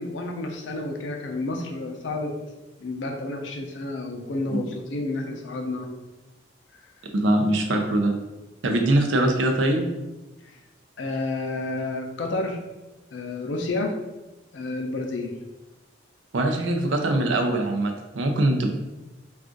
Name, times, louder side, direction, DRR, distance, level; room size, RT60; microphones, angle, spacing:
voice 1, 0.0-2.3 2.8-5.9 11.0-12.6 13.1-13.9 14.5-15.3, left 2 dB, 75° left, 2 dB, 0.5 m, -30 dB
voice 2, 7.1-8.1 8.6-9.9 16.3-18.7, right 1 dB, 85° right, 3 dB, 0.5 m, -22 dB
2.4 x 2.4 x 3.7 m, 1.0 s
head